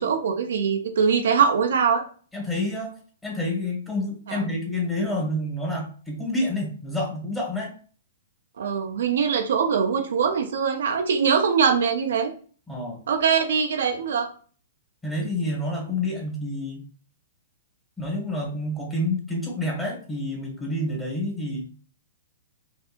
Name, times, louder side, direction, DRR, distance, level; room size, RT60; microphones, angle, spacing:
voice 1, 0.0-2.0 4.3-4.5 8.6-12.3 13.1-14.3, right 6 dB, 70° right, 4 dB, 0.6 m, -22 dB
voice 2, 2.3-2.9 3.2-7.7 12.7-13.0 15.0-16.8 18.0-21.8, left 1 dB, 10° left, -2 dB, 1.5 m, -28 dB
4.6 x 2.7 x 2.5 m, 0.42 s
hypercardioid pair, 125°, 0 cm